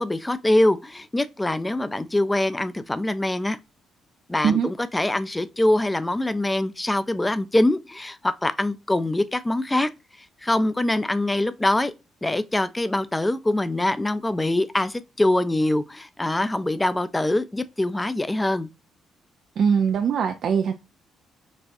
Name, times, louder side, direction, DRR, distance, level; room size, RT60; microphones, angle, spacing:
voice 1, 0.0-3.6 4.3-9.9 10.4-11.9 12.2-18.7, left 1 dB, 15° left, 0.4 m, -23 dB
voice 2, 19.6-20.7, right 7 dB, 60° right, 0.3 m, -21 dB
4.1 x 2.3 x 2.6 m
hypercardioid pair, 50°, 0 cm